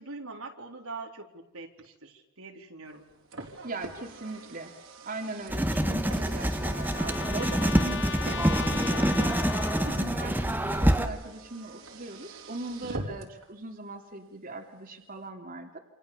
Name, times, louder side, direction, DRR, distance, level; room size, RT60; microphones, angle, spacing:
voice 1, 0.0-3.1 9.8-10.1 12.8-13.0, right 3 dB, 85° right, 2 dB, 4.1 m, -43 dB
Car, 2.9-13.5, right 2 dB, 70° right, 4.1 m, -45 dB
voice 2, 3.6-4.7 5.0-9.4 9.9-15.8, right 2 dB, 40° right, 3 dB, 2.9 m, -39 dB
Writing, 5.5-11.1, equal, 10° right, 1.7 m, -26 dB
Trumpet, 5.6-10.5, left 6 dB, 60° left, 1.0 m, -38 dB
28.5 x 27.5 x 7.0 m, 0.90 s
head